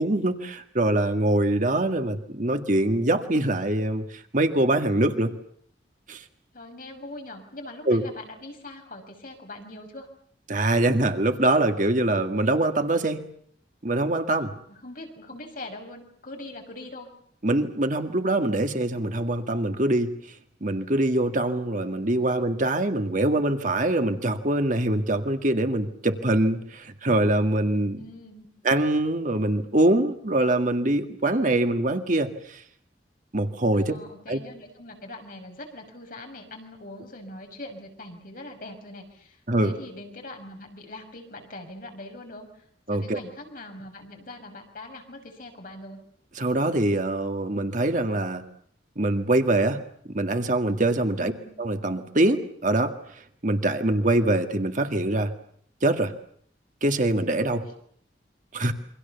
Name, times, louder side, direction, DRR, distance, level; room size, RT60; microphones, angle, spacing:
voice 1, 0.0-5.3 6.1-6.2 7.9-8.0 10.5-13.2 13.8-14.5 17.4-20.1 20.6-28.0 28.6-32.6 33.3-33.9 34.3-34.4 39.5-39.8 42.9-43.2 46.4-48.4 49.0-49.8 50.1-51.3 51.6-52.9 53.4-55.3 55.8-56.1 56.8-57.6 58.5-58.7, right 1 dB, 45° right, 6 dB, 1.9 m, -24 dB
voice 2, 6.5-10.1 14.7-17.1 28.0-28.5 33.7-42.6 42.9-46.0 51.2-51.5, left 2 dB, 50° left, 3 dB, 5.8 m, -42 dB
28.0 x 24.5 x 7.1 m, 0.65 s
head